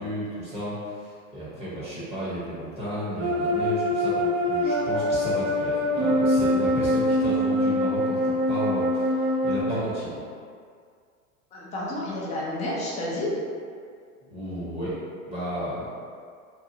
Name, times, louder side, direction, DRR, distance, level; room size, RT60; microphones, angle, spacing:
voice 1, 0.0-10.3 14.2-15.0 15.3-15.9, equal, 15° right, -10 dB, 0.7 m, -33 dB
sound 1, 3.2-9.6, left 1 dB, 50° right, 0.5 m, -24 dB
voice 2, 11.5-13.3, left 1 dB, 20° left, -5 dB, 0.4 m, -30 dB
2.8 x 2.2 x 2.6 m, 2.1 s
hypercardioid pair, 110°, 44 cm